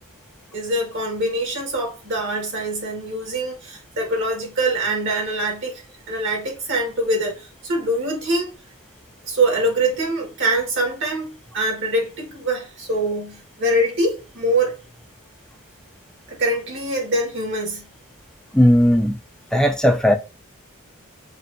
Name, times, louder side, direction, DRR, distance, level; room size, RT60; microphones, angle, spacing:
voice 1, 0.5-5.8 6.1-8.5 9.2-14.7 16.3-17.9, right 1 dB, 55° right, 1.6 m, -24 dB
voice 2, 18.5-19.2 19.5-20.2, equal, 5° left, 0.4 m, -16 dB
6.0 x 2.5 x 2.5 m
head